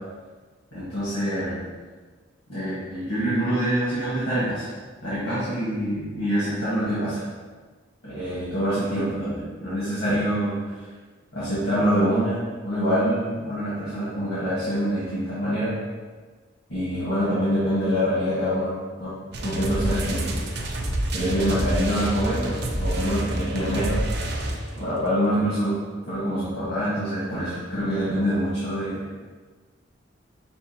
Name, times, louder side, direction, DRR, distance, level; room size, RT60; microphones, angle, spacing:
voice 1, 0.7-1.6 2.5-4.7 5.0-7.2 8.0-10.6 11.3-15.8 16.7-19.1 19.4-20.3 21.1-24.2 24.7-25.8 26.0-29.0, equal, 85° left, -12 dB, 1.5 m, -25 dB
sound 1, 19.3-24.9, right 1 dB, 60° right, 0.6 m, -28 dB
6.0 x 2.6 x 2.8 m, 1.4 s
head